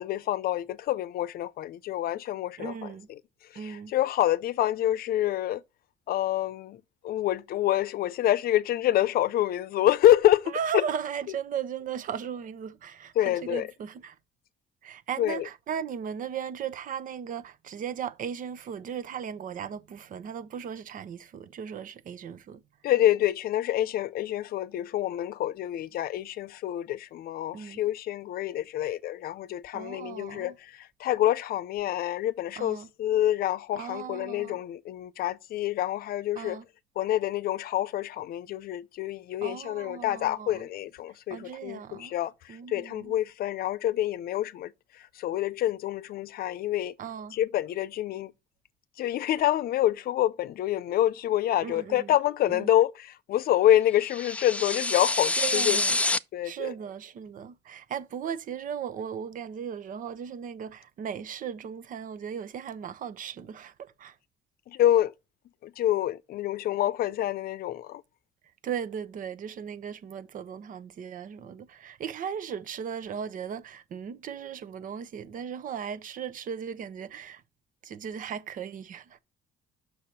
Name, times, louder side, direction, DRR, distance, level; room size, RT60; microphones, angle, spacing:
voice 1, 0.0-2.7 3.5-5.6 6.1-10.8 13.2-13.7 15.2-15.5 22.8-36.6 37.0-47.0 47.3-48.3 49.0-55.8 56.3-56.7 64.7-65.1 65.6-68.0, left 13 dB, 65° left, 0.7 m, -27 dB
voice 2, 2.6-3.1 3.5-3.9 10.5-14.2 14.8-22.6 27.5-27.8 29.7-30.6 32.6-32.9 33.8-34.6 36.3-36.7 39.4-40.7 41.3-42.1 42.5-43.2 47.0-47.4 51.6-52.1 52.5-52.7 55.4-56.0 56.4-64.2 68.6-77.4 77.8-79.2, right 8 dB, 50° right, 0.9 m, -37 dB
sound 1, 54.1-56.2, left 2 dB, 10° left, 0.4 m, -27 dB
6.8 x 6.3 x 4.2 m
cardioid pair, 110°, 17 cm